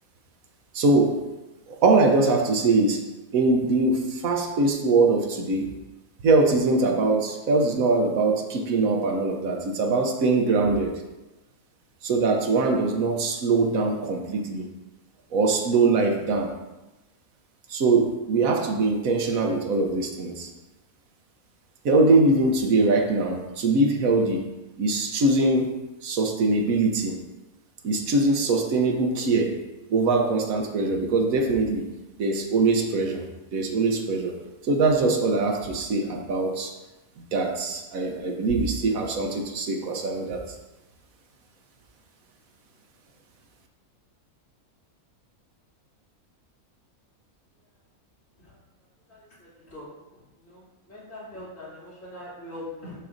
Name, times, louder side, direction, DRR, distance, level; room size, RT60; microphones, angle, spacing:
voice 1, 0.7-1.2 1.7-3.0 3.3-5.7 6.2-11.0 12.0-14.7 15.3-16.5 17.7-20.5 21.8-24.5 24.8-25.7 26.0-27.2 27.8-29.6 29.9-31.9 32.2-33.2 33.5-34.4 34.6-36.7 37.2-40.6, right 3 dB, 70° right, 3 dB, 1.2 m, -22 dB
voice 2, 50.9-52.9, left 1 dB, 60° left, -8 dB, 2.9 m, -40 dB
11.0 x 4.4 x 2.5 m, 1.0 s
omnidirectional pair, 1.5 m